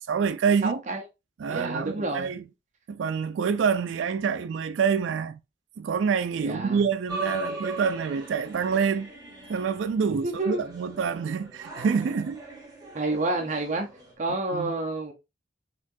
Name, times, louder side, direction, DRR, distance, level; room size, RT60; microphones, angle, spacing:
voice 1, 0.1-0.8 1.4-2.4 2.9-5.4 5.8-9.1 9.5-12.4 14.5-14.7, right 6 dB, 90° right, 0.4 m, -26 dB
voice 2, 0.6-1.0 1.5-2.3 6.4-6.8 10.2-10.6 12.9-13.9 14.2-15.1, right 2 dB, 40° right, 0.8 m, -29 dB
sound 1, 7.1-14.1, right 1 dB, 20° right, 1.6 m, -40 dB
4.3 x 3.8 x 2.6 m
head